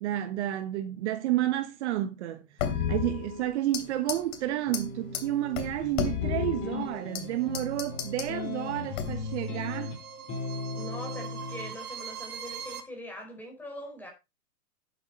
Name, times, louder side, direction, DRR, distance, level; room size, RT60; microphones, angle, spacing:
voice 1, 0.0-9.9, right 14 dB, 45° right, 1.2 m, -31 dB
sound 1, 2.6-4.4 4.7-4.8 5.1-5.2 5.6-7.2 7.5-8.3 8.9-9.4, left 8 dB, 50° left, 2.9 m, -32 dB
sound 2, 4.7-11.7, left 3 dB, 25° left, 5.6 m, -38 dB
sound 3, 6.8-12.8, right 6 dB, 70° right, 3.0 m, -43 dB
voice 2, 10.8-14.1, left 1 dB, 5° left, 4.8 m, -42 dB
11.0 x 8.4 x 4.1 m
hypercardioid pair, 130°, 48 cm